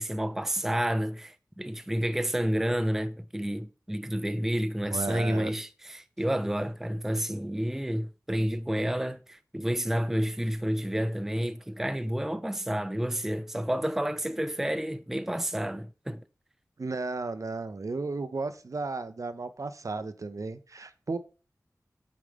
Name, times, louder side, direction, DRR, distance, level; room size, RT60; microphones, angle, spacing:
voice 1, 0.0-16.2, equal, 5° right, 0.4 m, -30 dB
voice 2, 4.9-5.5 16.8-21.2, right 3 dB, 60° right, 0.6 m, -34 dB
8.5 x 4.8 x 3.6 m
wide cardioid pair, 55°, 6 cm